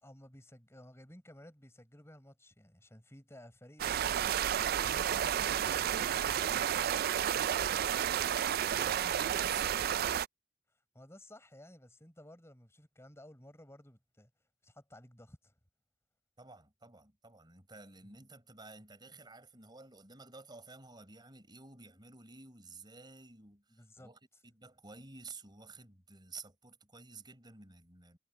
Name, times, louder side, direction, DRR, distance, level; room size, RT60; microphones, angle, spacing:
voice 1, 0.0-8.2 10.7-14.3 14.6-15.5 18.0-18.2 23.7-24.1, left 1 dB, 15° left, 7.2 m, -55 dB
sound 1, 3.8-10.3, right 9 dB, 55° right, 0.3 m, -31 dB
voice 2, 8.4-9.9 16.4-28.2, right 3 dB, 25° right, 5.0 m, -52 dB
head